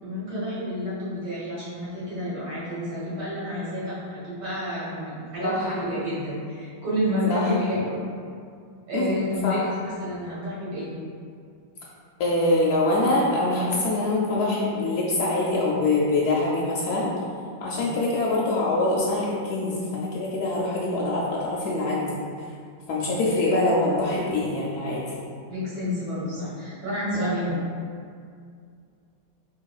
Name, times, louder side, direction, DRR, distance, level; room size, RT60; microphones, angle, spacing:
voice 1, 0.0-8.0 8.9-9.7 10.0-10.9 17.7-17.9 25.5-27.5, left 1 dB, 70° right, -9 dB, 2.1 m, -30 dB
voice 2, 5.4-5.7 7.3-7.5 8.9-9.2 9.4-9.7 12.2-17.1 17.6-22.2 22.9-25.0 27.1-27.5, left 2 dB, 70° left, -5 dB, 1.0 m, -24 dB
4.4 x 3.6 x 2.3 m, 2.2 s
omnidirectional pair, 2.0 m